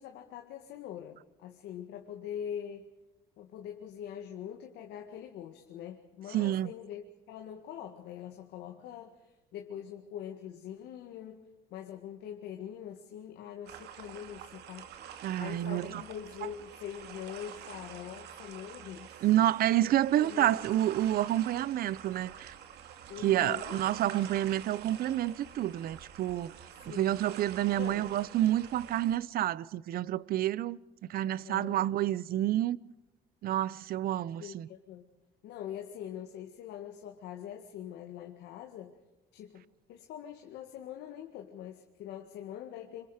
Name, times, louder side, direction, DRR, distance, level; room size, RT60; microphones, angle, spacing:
voice 1, 0.0-2.9 3.4-19.3 20.2-20.5 23.1-23.8 26.8-27.2 27.8-28.1 31.4-31.9 34.4-35.1 35.4-39.0 39.3-43.1, left 9 dB, 80° left, 2.0 m, -43 dB
voice 2, 6.3-6.7 15.2-16.0 19.2-22.5 23.2-26.5 26.9-30.8 31.1-32.8 33.4-34.7, right 13 dB, 60° right, 0.7 m, -29 dB
sound 1, 13.7-29.2, right 9 dB, 80° right, 2.2 m, -47 dB
27.5 x 26.0 x 5.1 m
cardioid pair, 110°, 17 cm